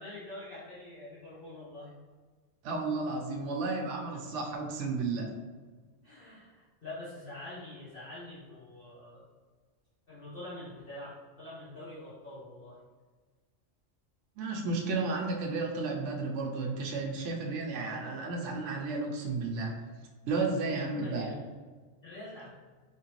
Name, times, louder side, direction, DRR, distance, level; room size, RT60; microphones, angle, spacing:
voice 1, 0.0-1.9 4.1-4.2 6.0-9.2 10.1-12.8 20.7-21.6 22.0-22.5, left 1 dB, 50° left, -12 dB, 1.3 m, -45 dB
voice 2, 2.6-5.3 14.4-19.8 20.2-21.3, right 3 dB, 75° right, 0 dB, 0.9 m, -33 dB
3.7 x 3.0 x 2.9 m, 1.4 s
omnidirectional pair, 1.3 m